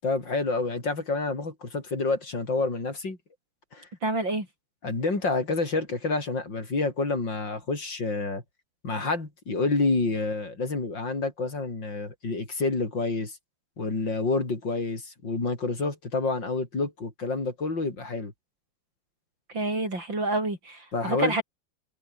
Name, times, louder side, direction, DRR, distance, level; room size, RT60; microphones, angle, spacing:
voice 1, 0.0-3.2 3.7-3.9 4.8-8.4 8.8-13.4 13.8-18.3 20.9-21.3, left 3 dB, 70° left, 6.0 m, -28 dB
voice 2, 4.0-4.5 19.5-21.4, right 2 dB, 80° right, 8.5 m, -28 dB
omnidirectional pair, 2.0 m